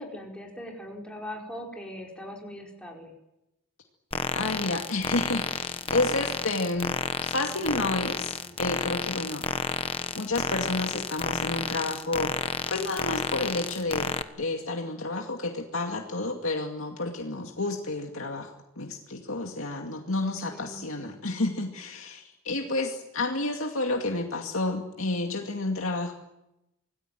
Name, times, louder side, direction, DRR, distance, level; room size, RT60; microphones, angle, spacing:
voice 1, 0.0-3.1 20.2-21.1, left 1 dB, 5° left, -1 dB, 4.9 m, -41 dB
sound 1, 4.1-14.2, left 4 dB, 25° left, 1.2 m, -31 dB
voice 2, 4.3-6.9 7.2-9.5 10.1-12.3 12.7-26.1, left 2 dB, 80° left, 2 dB, 2.4 m, -30 dB
26.0 x 19.0 x 9.3 m, 0.90 s
head